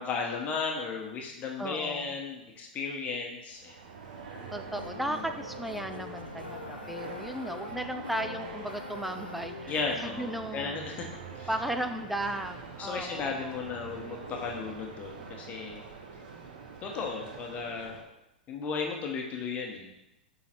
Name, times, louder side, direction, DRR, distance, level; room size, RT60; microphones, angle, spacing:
voice 1, 0.0-3.8 5.1-5.2 9.7-11.1 11.4-11.5 12.8-15.8 16.8-17.9 18.5-19.9, left 5 dB, 30° left, 1 dB, 1.1 m, -35 dB
voice 2, 1.6-2.2 4.5-9.7 10.0-10.8 11.5-13.6, right 1 dB, ahead, 7 dB, 0.5 m, -35 dB
sound 1, 3.5-18.0, right 5 dB, 65° right, 1.0 m, -45 dB
sound 2, 4.7-10.0, left 4 dB, 85° left, 0.5 m, -44 dB
sound 3, 4.7-13.9, right 2 dB, 80° right, 1.4 m, -52 dB
7.2 x 3.9 x 4.4 m, 0.90 s
figure-of-eight pair, 100°, 5 cm